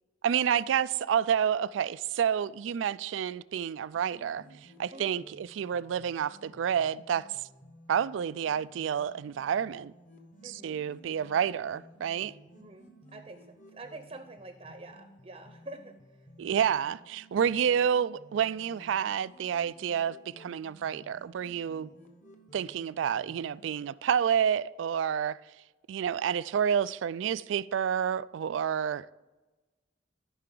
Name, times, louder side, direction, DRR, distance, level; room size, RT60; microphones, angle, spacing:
voice 1, 0.2-4.4 4.8-7.2 7.9-9.9 10.4-12.3 16.4-21.9 22.5-25.4 25.9-29.1, right 8 dB, 85° right, 0.3 m, -29 dB
sound 1, 3.9-23.7, right 1 dB, 45° left, 1.1 m, -56 dB
voice 2, 10.4-10.8 12.5-16.3, right 2 dB, 35° right, 0.7 m, -47 dB
13.5 x 5.7 x 3.8 m
head